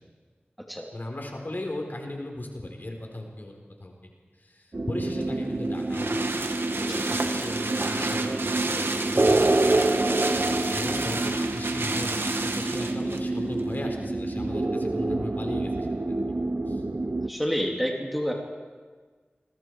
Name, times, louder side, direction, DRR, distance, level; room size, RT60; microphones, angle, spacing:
voice 1, 0.9-4.1 4.4-6.2 6.7-9.9 10.1-16.2 16.7-16.8, left 1 dB, 55° left, 2 dB, 4.1 m, -37 dB
sound 1, 4.7-17.3, right 2 dB, 50° right, 0.9 m, -27 dB
sound 2, 5.1-13.3 13.6-13.7, right 2 dB, 75° right, 1.6 m, -31 dB
voice 2, 17.2-18.3, equal, ahead, 0 dB, 2.9 m, -29 dB
28.0 x 22.5 x 4.7 m, 1.5 s
wide cardioid pair, 50°, 4 cm